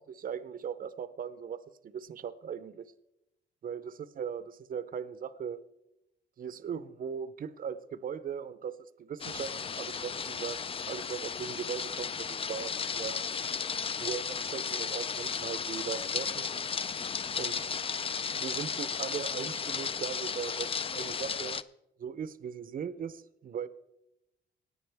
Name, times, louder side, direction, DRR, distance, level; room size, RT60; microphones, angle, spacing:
voice 1, 0.2-2.9 3.6-5.6 6.4-10.6 10.9-13.2 14.0-16.5 17.4-17.7 18.3-21.6 22.0-23.7, right 7 dB, 45° right, 14 dB, 0.6 m, -39 dB
sound 1, 9.2-21.6, left 6 dB, 30° left, 0.4 m, -34 dB
17.5 x 9.6 x 3.4 m, 0.89 s
cardioid pair, 90°, 20 cm